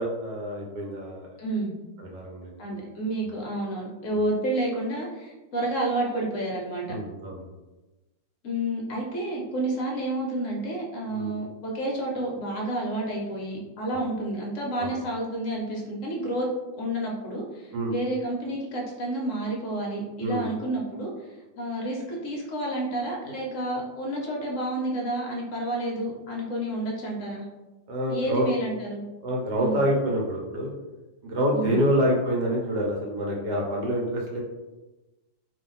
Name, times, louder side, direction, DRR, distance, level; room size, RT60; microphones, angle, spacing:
voice 1, 0.0-1.3 2.0-2.7 6.9-7.4 11.1-11.4 13.9-14.0 14.8-14.9 17.7-17.9 20.2-20.5 27.9-28.5 29.2-30.7 31.2-34.4, equal, 70° right, -1 dB, 1.3 m, -27 dB
voice 2, 1.4-1.7 2.6-7.0 8.4-16.5 16.8-21.3 21.6-27.4 28.1-29.0 29.6-29.8 31.5-31.8, right 1 dB, 60° left, -2 dB, 0.9 m, -30 dB
2.7 x 2.7 x 3.8 m, 1.1 s
omnidirectional pair, 2.0 m